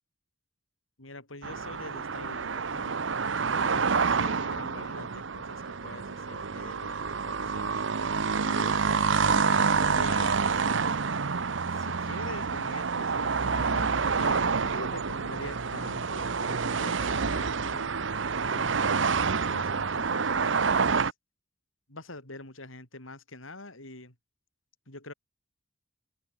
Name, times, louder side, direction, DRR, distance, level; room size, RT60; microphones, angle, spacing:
voice 1, 1.0-3.0 3.4-7.8 8.4-10.9 11.7-13.9 14.2-17.9 18.5-19.1 19.5-21.1 21.9-24.1 24.9-25.1, left 2 dB, 90° left, 7.6 m, -44 dB
sound 1, 1.4-21.1, right 5 dB, 70° right, 0.9 m, -28 dB
open air
head